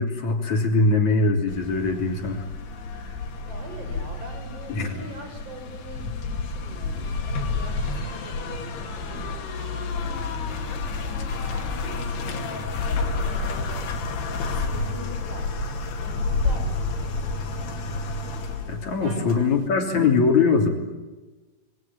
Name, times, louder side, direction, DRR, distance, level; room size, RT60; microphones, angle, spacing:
voice 1, 0.0-2.4 3.0-3.1 4.8-5.0 18.7-20.7, left 4 dB, 45° left, 3 dB, 4.3 m, -22 dB
sound 1, 1.5-19.6, left 3 dB, 70° left, 4.4 m, -30 dB
voice 2, 3.4-10.9 11.5-12.6 13.1-13.9 14.5-15.7 16.0-17.7 19.0-19.5, right 1 dB, 35° right, 5 dB, 6.4 m, -43 dB
28.0 x 22.0 x 8.9 m, 1.2 s
omnidirectional pair, 4.9 m